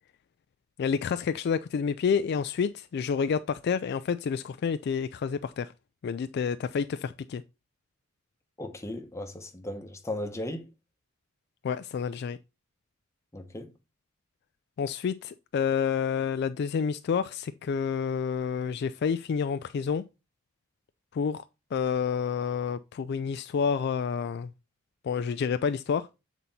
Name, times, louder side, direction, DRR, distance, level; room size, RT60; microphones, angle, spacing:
voice 1, 0.8-5.7 6.0-7.4 11.6-12.4 14.8-20.0 21.1-21.4 21.7-24.5 25.0-26.1, left 6 dB, 55° left, 0.3 m, -29 dB
voice 2, 8.6-10.7 13.3-13.7, left 1 dB, 15° left, 0.9 m, -36 dB
7.6 x 4.1 x 4.1 m
head